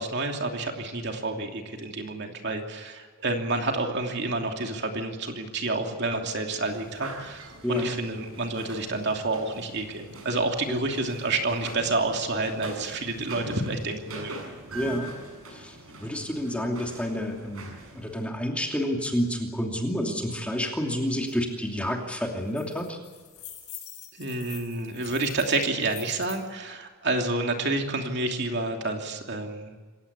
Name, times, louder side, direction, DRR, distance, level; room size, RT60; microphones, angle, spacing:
voice 1, 0.0-14.4 24.2-29.7, right 2 dB, 50° right, 3 dB, 2.9 m, -29 dB
sound 1, 6.6-18.2, right 1 dB, 75° right, 7.2 m, -43 dB
voice 2, 14.7-15.1 15.5-23.0, equal, 5° left, 1 dB, 2.8 m, -29 dB
sound 2, 21.3-21.4 21.7-21.9 22.2-26.4, left 11 dB, 80° left, 7.5 m, -45 dB
27.5 x 16.0 x 8.3 m, 1.4 s
head